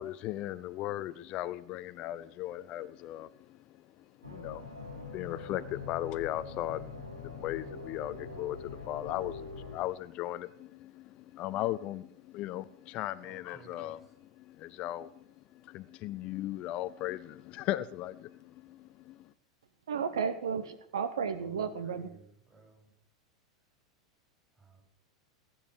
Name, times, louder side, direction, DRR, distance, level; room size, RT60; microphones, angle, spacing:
voice 1, 0.0-19.3, left 14 dB, 40° left, 14 dB, 0.5 m, -38 dB
sound 1, 4.2-9.8, left 4 dB, 85° right, 3.3 m, -43 dB
voice 2, 13.2-13.9 21.3-22.8 24.6-24.8, right 3 dB, 15° right, 2 dB, 6.6 m, -57 dB
voice 3, 19.9-22.1, right 6 dB, 65° right, 13 dB, 0.9 m, -33 dB
19.5 x 8.9 x 6.5 m, 0.73 s
figure-of-eight pair, 90°, 3 cm